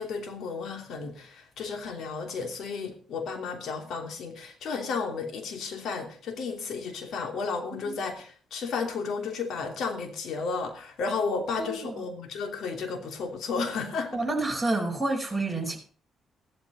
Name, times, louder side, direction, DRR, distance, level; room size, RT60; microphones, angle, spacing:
voice 1, 0.0-14.2, left 4 dB, 70° left, 2.9 m, -33 dB
voice 2, 11.6-12.0 14.1-15.8, right 2 dB, ahead, 4.8 m, -29 dB
14.0 x 12.5 x 4.2 m
cardioid pair, 90°, 0 cm